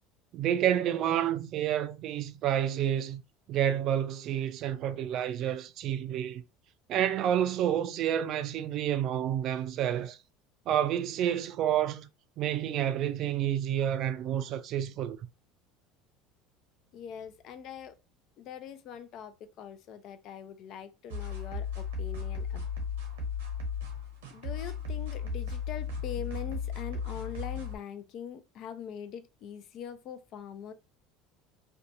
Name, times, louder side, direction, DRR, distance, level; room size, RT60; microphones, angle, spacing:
voice 1, 0.3-3.2 3.5-6.4 6.9-10.2 10.7-12.1 12.4-15.2, right 10 dB, 55° right, 0.3 m, -29 dB
voice 2, 16.9-17.9 18.4-22.7 24.3-30.7, left 8 dB, 55° left, 0.4 m, -42 dB
sound 1, 21.1-27.8, left 5 dB, 85° right, 0.8 m, -35 dB
2.7 x 2.2 x 2.6 m
hypercardioid pair, 85°, 0 cm